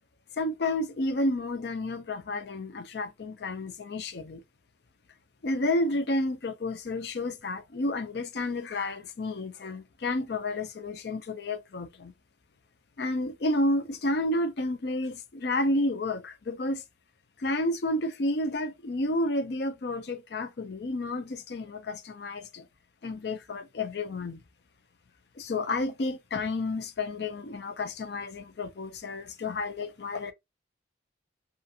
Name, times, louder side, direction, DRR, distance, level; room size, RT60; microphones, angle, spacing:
voice 1, 0.4-4.4 5.4-12.1 13.0-16.8 17.4-22.6 23.0-24.4 25.4-30.3, left 2 dB, 60° left, 0.5 m, -31 dB
2.7 x 2.5 x 2.5 m
head